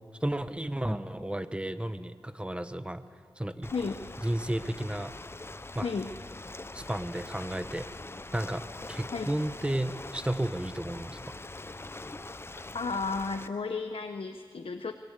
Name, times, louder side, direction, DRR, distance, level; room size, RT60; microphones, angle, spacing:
voice 1, 0.2-3.0 3.4-3.7 4.2-5.1 5.7-5.9 6.7-7.9 8.3-11.4, right 1 dB, 10° right, 11 dB, 1.0 m, -33 dB
Ocean, 3.6-13.5, left 2 dB, 25° left, 0.6 m, -43 dB
voice 2, 5.8-6.1 9.1-9.3 12.7-14.9, left 4 dB, 70° left, 7 dB, 1.0 m, -33 dB
24.0 x 19.5 x 8.3 m, 2.1 s
wide cardioid pair, 70°, 10 cm